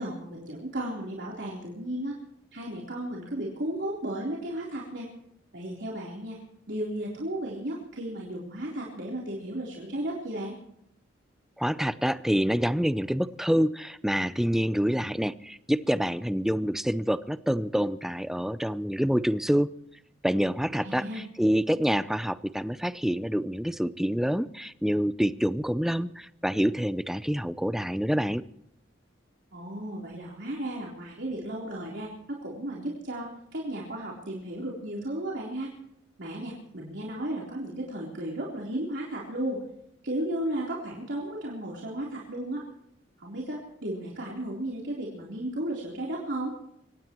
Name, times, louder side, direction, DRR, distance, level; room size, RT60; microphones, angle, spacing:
voice 1, 0.0-2.2 2.5-5.1 5.5-6.4 6.7-10.6 20.8-21.2 29.5-35.7 36.2-39.6 40.0-42.6 43.2-46.5, right 1 dB, 65° right, -4 dB, 3.8 m, -34 dB
voice 2, 11.6-19.7 20.2-28.4, equal, ahead, 14 dB, 0.6 m, -27 dB
24.5 x 19.0 x 3.1 m, 0.75 s
head